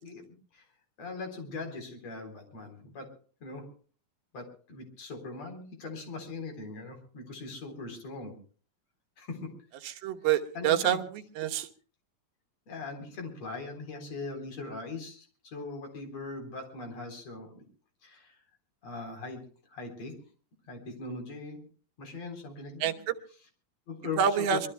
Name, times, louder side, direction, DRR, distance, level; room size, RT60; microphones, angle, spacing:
voice 1, 1.0-3.1 3.4-3.7 4.3-8.4 9.2-9.5 10.5-11.0 12.7-17.6 18.0-18.3 18.8-19.4 19.7-20.2 20.7-21.7 22.0-22.9 23.9-24.6, left 3 dB, 45° left, 5 dB, 5.0 m, -40 dB
voice 2, 9.8-11.7 22.8-23.2 24.2-24.6, right 9 dB, 85° right, 5 dB, 3.0 m, -27 dB
25.0 x 23.0 x 2.2 m, 0.41 s
omnidirectional pair, 4.2 m